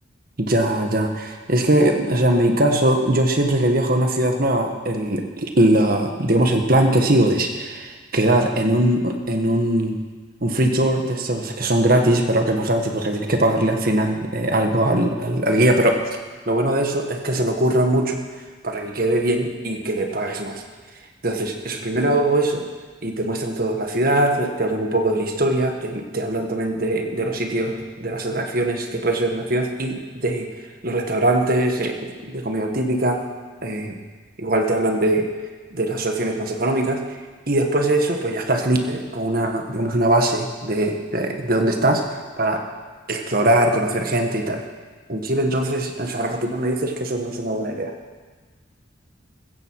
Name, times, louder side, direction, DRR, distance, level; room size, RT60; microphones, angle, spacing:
voice 1, 0.4-10.0 10.4-16.0 16.5-18.2 18.6-20.6 21.2-22.6 23.0-30.5 30.8-33.2 33.6-34.0 34.4-35.3 35.7-37.0 37.5-42.0 42.4-42.6 43.1-44.6 45.1-47.9, right 1 dB, 50° right, 3 dB, 1.7 m, -21 dB
16.0 x 15.0 x 4.9 m, 1.4 s
head